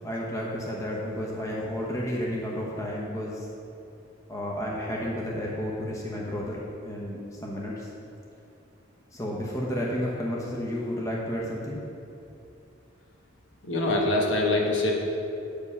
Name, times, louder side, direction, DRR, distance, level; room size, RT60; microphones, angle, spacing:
voice 1, 0.0-3.5 4.3-7.9 9.1-11.8, equal, 15° left, -4 dB, 0.9 m, -32 dB
voice 2, 13.6-14.9, left 2 dB, 60° left, -1 dB, 1.2 m, -24 dB
8.3 x 5.3 x 5.6 m, 2.7 s
head